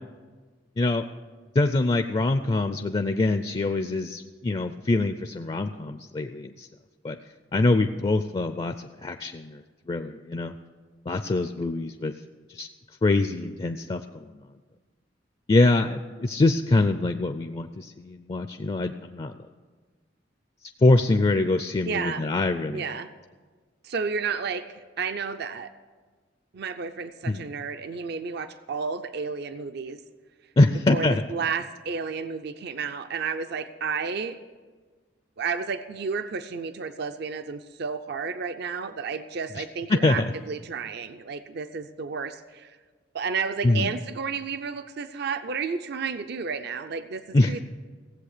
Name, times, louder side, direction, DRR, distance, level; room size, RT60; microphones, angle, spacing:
voice 1, 1.6-6.7 7.0-7.2 7.5-9.6 9.9-10.5 11.1-12.1 12.5-12.7 13.0-14.3 15.5-19.4 20.8-22.9 27.3-27.4 30.6-31.2 39.6-39.7 39.9-40.3 43.6-43.9 47.3-47.6, left 2 dB, 30° left, 8 dB, 0.4 m, -24 dB
voice 2, 21.8-22.3 22.7-23.1 23.8-25.7 26.5-30.0 30.9-34.4 35.4-42.8 43.1-47.6, right 5 dB, 60° right, 10 dB, 0.5 m, -32 dB
16.5 x 7.8 x 6.6 m, 1.4 s
head